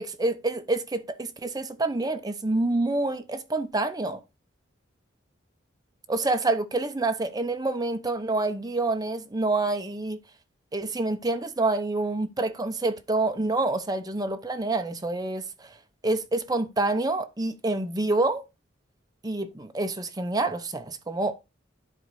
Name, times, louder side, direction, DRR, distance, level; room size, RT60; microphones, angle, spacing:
voice 1, 0.0-4.2 6.1-10.2 10.7-15.7 16.0-18.4 19.2-21.3, right 2 dB, 20° right, 0.9 m, -27 dB
11.0 x 4.0 x 4.8 m
head